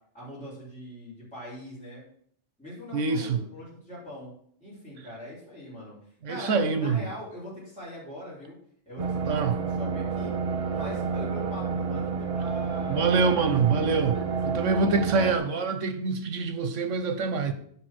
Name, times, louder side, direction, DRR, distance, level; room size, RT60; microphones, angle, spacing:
voice 1, 0.1-2.1 2.6-4.3 4.6-5.9 6.3-8.6 8.9-10.3 10.7-15.4, equal, 5° left, 4.6 m, -42 dB
voice 2, 2.9-3.4 6.2-7.1 9.3-9.6 12.9-14.2 14.4-17.5, right 4 dB, 80° right, 1.3 m, -25 dB
sound 1, 9.0-15.4, right 5 dB, 40° right, 0.5 m, -29 dB
9.0 x 5.2 x 6.3 m
omnidirectional pair, 1.3 m